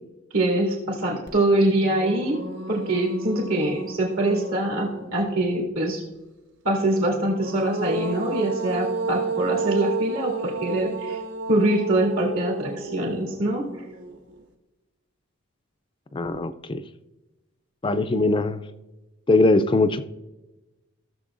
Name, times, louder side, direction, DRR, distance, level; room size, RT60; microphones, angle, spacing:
voice 1, 0.3-2.4 2.7-6.0 6.6-11.2 11.5-13.8, right 1 dB, 75° right, -3 dB, 2.7 m, -24 dB
sound 1, 1.3-1.4 1.8-5.4 7.1-14.3, right 3 dB, 60° right, 1.2 m, -32 dB
voice 2, 16.1-16.8 17.8-18.6 19.3-20.0, left 2 dB, 25° left, 11 dB, 0.3 m, -21 dB
16.5 x 6.9 x 2.5 m, 1.1 s
head